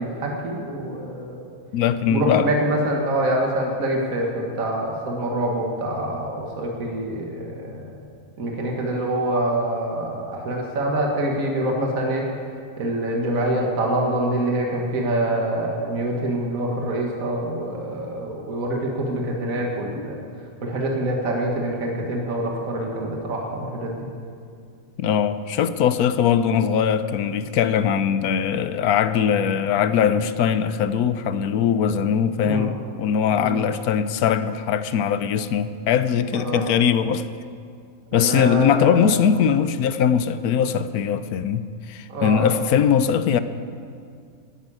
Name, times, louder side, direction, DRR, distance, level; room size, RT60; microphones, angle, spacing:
voice 1, 0.0-1.4 2.1-8.0 8.4-12.3 12.8-20.2 20.6-24.0 32.4-32.7 33.4-33.6 36.3-36.6 38.1-39.1 42.1-42.5, right 1 dB, 60° right, -1 dB, 2.1 m, -25 dB
voice 2, 1.7-2.5 25.0-37.2 38.1-43.4, left 8 dB, 75° left, 12 dB, 1.1 m, -21 dB
11.0 x 10.5 x 8.6 m, 2.3 s
omnidirectional pair, 1.7 m